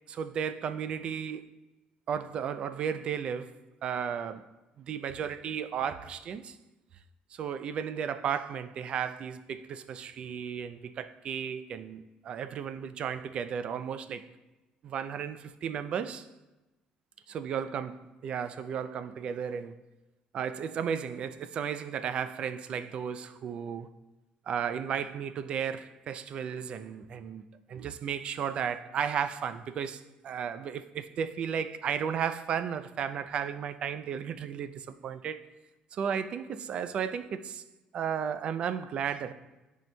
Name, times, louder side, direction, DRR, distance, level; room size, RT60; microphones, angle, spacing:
voice 1, 0.1-1.5 2.1-3.5 3.8-4.4 4.8-6.6 7.3-14.3 14.8-16.3 17.3-17.9 18.2-19.8 20.3-23.9 24.5-27.4 27.7-35.4 36.0-37.6 37.9-39.3, right 7 dB, 40° right, 0.3 m, -34 dB
13.0 x 4.5 x 2.2 m
cardioid pair, 175°, 3 cm